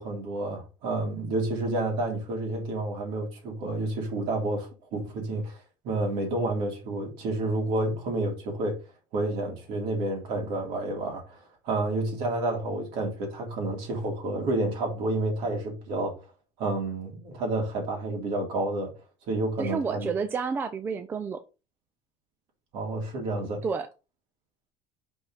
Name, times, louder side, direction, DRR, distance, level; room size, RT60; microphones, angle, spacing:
voice 1, 0.0-5.5 5.8-8.8 9.1-16.1 16.6-18.9 19.3-20.1 22.7-23.6, right 2 dB, 60° right, 3.4 m, -30 dB
voice 2, 19.6-21.4 23.6-23.9, right 5 dB, 20° right, 0.4 m, -30 dB
5.8 x 5.3 x 4.2 m
cardioid pair, 170°, 10 cm